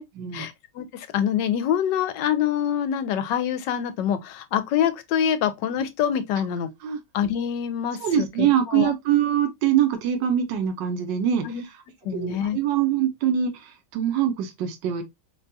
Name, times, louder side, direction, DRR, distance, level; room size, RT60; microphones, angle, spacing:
voice 1, 0.3-6.7 7.1-8.9 11.4-11.6 12.0-12.6, left 9 dB, 80° left, 1.3 m, -25 dB
voice 2, 8.0-11.8 12.1-15.0, right 9 dB, 85° right, 1.4 m, -24 dB
5.4 x 2.3 x 2.6 m
omnidirectional pair, 1.9 m